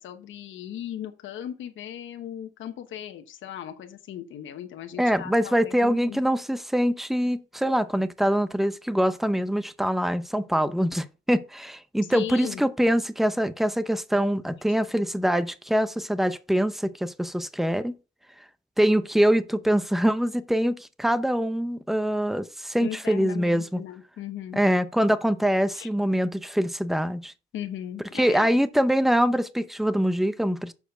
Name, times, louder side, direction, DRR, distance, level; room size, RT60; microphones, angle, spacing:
voice 1, 0.0-6.2 12.1-12.6 22.8-24.7 25.7-25.9 27.5-28.5, left 10 dB, 75° left, 1.1 m, -37 dB
voice 2, 5.0-18.0 18.8-23.8 24.6-27.3 28.1-30.7, equal, ahead, 0.7 m, -24 dB
7.2 x 4.5 x 6.7 m
cardioid pair, 90°, 20 cm